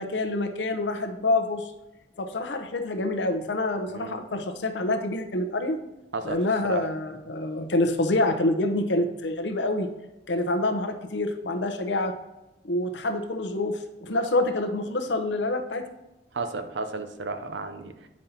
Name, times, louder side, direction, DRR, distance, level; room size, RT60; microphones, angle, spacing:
voice 1, 0.0-1.7 2.2-5.8 6.2-9.9 10.3-12.1 12.6-15.8, left 2 dB, 85° left, 0.8 m, -27 dB
voice 2, 3.9-4.2 6.1-6.9 16.3-18.1, right 3 dB, 90° right, 0.7 m, -33 dB
9.3 x 5.3 x 2.9 m
head